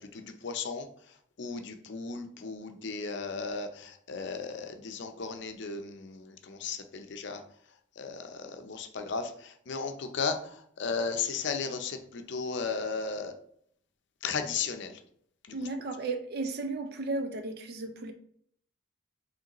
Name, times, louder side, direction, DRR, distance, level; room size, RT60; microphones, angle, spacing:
voice 1, 0.1-0.9 1.4-7.4 8.0-9.3 9.7-10.4 10.8-13.3 14.2-14.9, left 5 dB, 60° left, 6 dB, 0.5 m, -35 dB
voice 2, 15.5-18.1, right 3 dB, 50° right, 7 dB, 0.4 m, -34 dB
5.0 x 3.2 x 2.9 m, 0.64 s
head